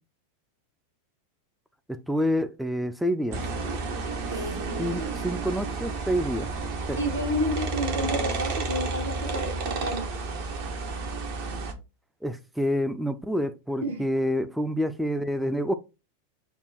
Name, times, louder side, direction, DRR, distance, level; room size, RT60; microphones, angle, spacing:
voice 1, 1.9-3.4 4.8-6.5 6.9-7.0 12.2-15.7, equal, ahead, 0.4 m, -27 dB
sound 1, 3.3-11.7, right 3 dB, 50° right, 0.8 m, -31 dB
voice 2, 4.3-5.1 7.0-10.1 13.8-14.1, equal, 70° right, 1.4 m, -31 dB
5.2 x 2.2 x 4.3 m
figure-of-eight pair, 90°, 0 cm